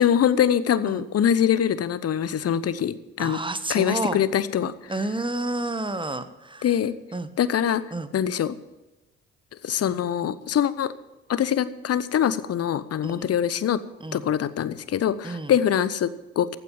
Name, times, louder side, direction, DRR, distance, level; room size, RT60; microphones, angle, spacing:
voice 1, 0.0-3.4 3.7-4.9 6.6-6.9 7.4-7.8 8.1-8.6 9.6-10.9 11.3-13.8 14.1-16.6, left 9 dB, 40° left, 15 dB, 1.0 m, -23 dB
voice 2, 3.2-4.2 4.9-6.6 7.1-7.3 7.9-8.1 13.0-13.3 14.0-14.2 15.2-15.5, right 2 dB, 15° right, 12 dB, 1.3 m, -30 dB
15.5 x 9.0 x 7.3 m, 1.1 s
figure-of-eight pair, 45°, 37 cm